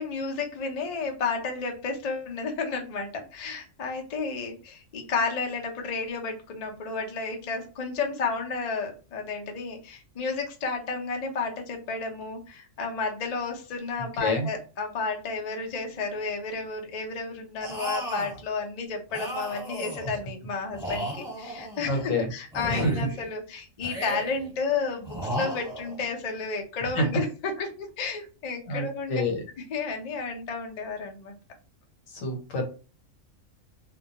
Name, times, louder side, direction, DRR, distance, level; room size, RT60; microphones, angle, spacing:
voice 1, 0.0-29.2 29.7-31.3, left 4 dB, 60° left, 2 dB, 0.4 m, -32 dB
voice 2, 14.2-14.5 21.9-22.3 22.7-23.1 26.8-27.1 28.7-29.4 32.1-32.6, left 1 dB, 80° left, 3 dB, 1.1 m, -27 dB
sound 1, 17.6-18.4 19.1-20.2 20.7-22.1 22.5-23.3 23.8-24.5 25.0-26.1, right 1 dB, 5° right, 1.0 m, -35 dB
2.2 x 2.2 x 2.7 m, 0.35 s
omnidirectional pair, 1.3 m